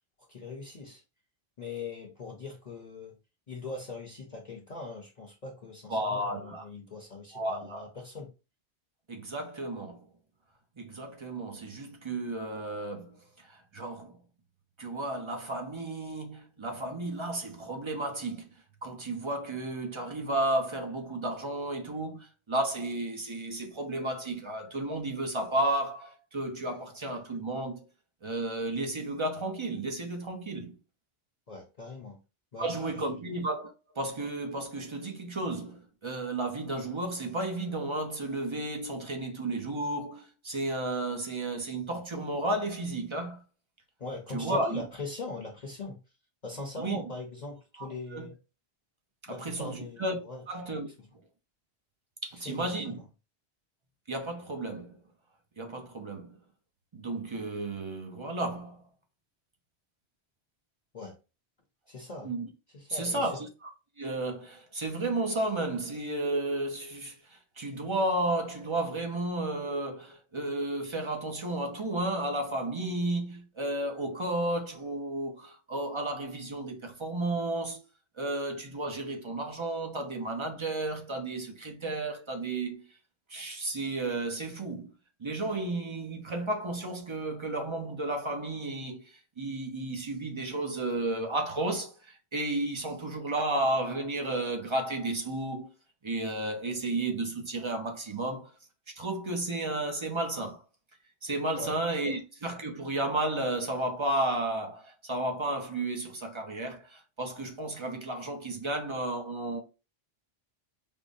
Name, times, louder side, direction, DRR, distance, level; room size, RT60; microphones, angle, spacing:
voice 1, 0.2-1.0 1.6-3.2 3.5-8.3 31.5-32.2 32.5-33.2 44.0-46.0 46.4-48.3 49.3-50.4 51.0-51.1 52.4-52.7 60.9-61.2 61.9-62.3 62.7-63.4 101.6-101.8 102.1-102.2, left 3 dB, 45° left, 0.7 m, -41 dB
voice 2, 5.9-6.7 7.3-7.8 9.1-10.1 10.8-14.2 14.8-18.5 18.8-27.9 28.2-30.7 32.6-43.4 44.3-44.9 46.8-47.0 47.8-48.3 49.2-50.2 50.5-50.9 52.2-53.0 54.1-55.0 55.6-56.4 56.9-58.8 62.2-62.5 62.9-63.7 64.0-77.8 78.2-82.8 83.3-84.9 85.2-95.7 96.0-98.5 99.0-100.6 101.2-109.6, right 2 dB, 35° right, 0.6 m, -33 dB
5.2 x 2.1 x 2.6 m
omnidirectional pair, 1.1 m